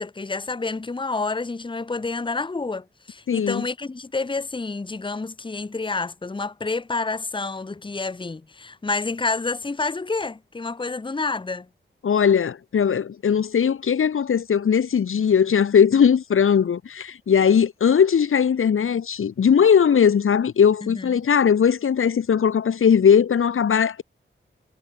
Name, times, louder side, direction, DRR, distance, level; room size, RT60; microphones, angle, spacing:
voice 1, 0.0-11.7 20.8-21.2, left 3 dB, 25° left, 1.1 m, -29 dB
voice 2, 3.3-3.6 12.0-24.0, left 7 dB, 90° left, 1.6 m, -19 dB
wide cardioid pair, 125°, 21 cm